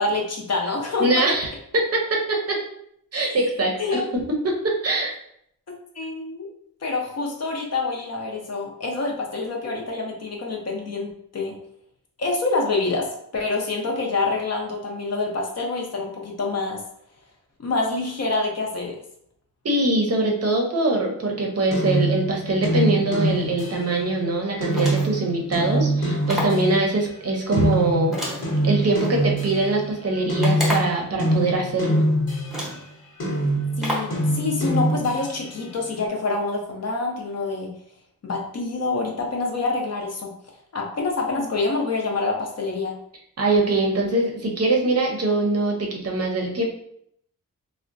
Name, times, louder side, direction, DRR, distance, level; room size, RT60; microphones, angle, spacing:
voice 1, 0.0-1.2 3.1-3.4 3.8-4.1 6.0-6.5 6.8-11.6 12.2-16.8 17.6-19.0 33.8-37.7 38.2-40.3 40.7-42.9, left 3 dB, 45° left, 0 dB, 0.6 m, -26 dB
voice 2, 1.0-1.5 1.7-2.6 3.1-5.1 19.6-28.2 28.6-32.0 43.4-46.6, right 2 dB, 45° right, 0 dB, 0.6 m, -23 dB
sound 1, 21.7-27.0 27.5-32.8 33.2-35.6, right 1 dB, 70° left, 1.0 m, -24 dB
sound 2, 24.7-25.3 26.3-26.7 28.1-29.1 30.4-31.1 31.9-32.0 32.5-32.9 33.8-34.2, left 1 dB, ahead, 0.8 m, -30 dB
3.5 x 2.1 x 2.5 m, 0.71 s
wide cardioid pair, 145°, 35 cm